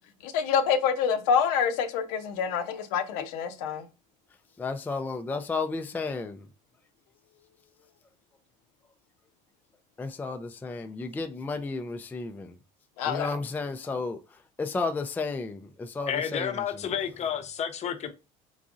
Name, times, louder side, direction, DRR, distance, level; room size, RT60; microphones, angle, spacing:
voice 1, 0.2-3.9 13.0-13.3, left 7 dB, 85° left, 0.6 m, -26 dB
voice 2, 4.6-6.5 10.0-12.6 13.1-16.9, left 3 dB, 10° left, 0.3 m, -33 dB
voice 3, 16.1-18.1, left 8 dB, 35° left, 0.7 m, -31 dB
3.9 x 3.6 x 2.5 m
supercardioid pair, 105°, 19 cm